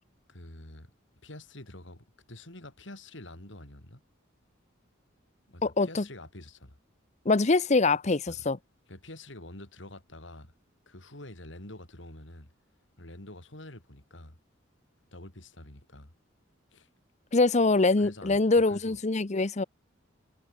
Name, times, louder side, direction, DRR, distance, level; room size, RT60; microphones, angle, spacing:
voice 1, 0.3-0.9 1.2-4.0 5.5-6.8 8.3-8.5 8.9-10.5 10.9-12.5 13.0-14.4 15.1-16.1 16.7-16.9 18.0-19.0, left 1 dB, 65° left, 4.5 m, -47 dB
voice 2, 5.6-6.0 7.3-8.6 17.3-19.6, left 3 dB, 35° left, 0.7 m, -24 dB
head